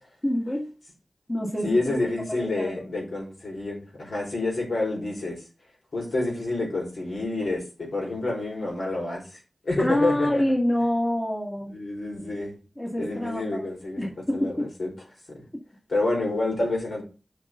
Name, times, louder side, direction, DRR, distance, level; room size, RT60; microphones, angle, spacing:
voice 1, 0.2-0.7 1.3-2.7 9.8-11.8 12.8-13.7 14.0-14.7, left 1 dB, 25° left, 0 dB, 1.9 m, -27 dB
voice 2, 1.6-5.4 5.9-10.4 11.7-12.5 13.0-14.9 15.3-15.4 15.9-17.0, left 2 dB, 75° left, -1 dB, 4.7 m, -28 dB
8.9 x 5.5 x 3.8 m, 0.33 s
wide cardioid pair, 55°, 0 cm